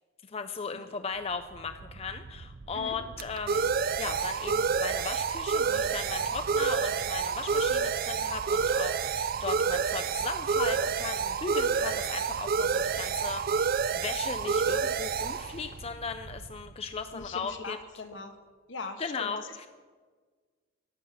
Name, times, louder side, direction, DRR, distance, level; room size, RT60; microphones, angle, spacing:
voice 1, 0.2-17.8 19.0-19.7, left 5 dB, 30° left, 8 dB, 0.4 m, -37 dB
sound 1, 1.6-17.0, right 6 dB, 50° right, 0.4 m, -29 dB
voice 2, 17.1-18.4 18.7-19.7, left 3 dB, 70° left, 6 dB, 1.3 m, -41 dB
11.5 x 7.1 x 9.3 m, 1.5 s
head